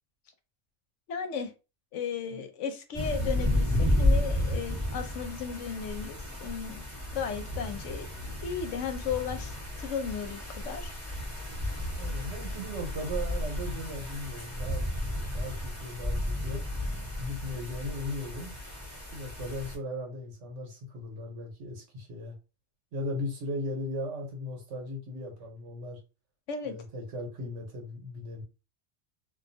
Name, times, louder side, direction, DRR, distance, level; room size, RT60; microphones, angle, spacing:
voice 1, 1.1-1.5 1.9-6.8 7.1-8.1 8.4-10.9 26.5-26.7, left 6 dB, 90° left, 1.0 m, -35 dB
sound 1, 2.9-19.8, left 1 dB, 15° right, 1.4 m, -32 dB
voice 2, 12.0-16.6 17.2-18.5 19.1-22.4 22.9-26.0 26.6-28.4, left 1 dB, 80° right, 1.2 m, -37 dB
2.6 x 2.3 x 2.6 m
omnidirectional pair, 1.2 m